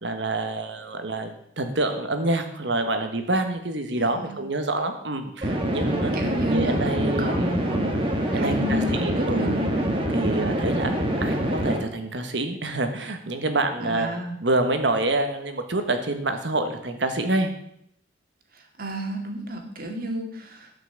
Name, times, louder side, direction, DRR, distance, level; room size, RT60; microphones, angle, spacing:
voice 1, 0.0-6.1 6.5-7.4 7.7-8.1 8.3-9.6 10.1-10.9 11.2-14.1 14.4-17.5, right 2 dB, 65° right, 7 dB, 1.5 m, -27 dB
voice 2, 4.0-4.4 6.1-7.7 8.3-10.0 13.8-14.3 18.5-20.7, equal, 50° right, 3 dB, 2.1 m, -31 dB
sound 1, 5.4-11.8, right 1 dB, 30° right, 1.7 m, -25 dB
11.5 x 6.0 x 7.2 m, 0.74 s
head